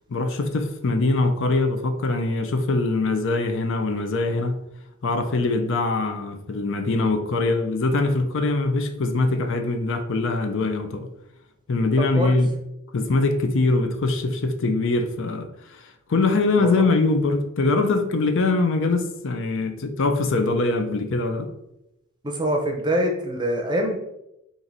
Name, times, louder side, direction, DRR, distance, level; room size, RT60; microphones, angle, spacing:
voice 1, 0.1-4.6 5.0-11.1 11.7-12.5 12.9-15.8 16.1-21.5, left 3 dB, 65° left, 6 dB, 0.6 m, -23 dB
voice 2, 12.0-12.4 16.6-16.8 22.2-24.0, equal, 20° right, 3 dB, 0.7 m, -24 dB
4.5 x 2.6 x 4.0 m, 0.85 s
head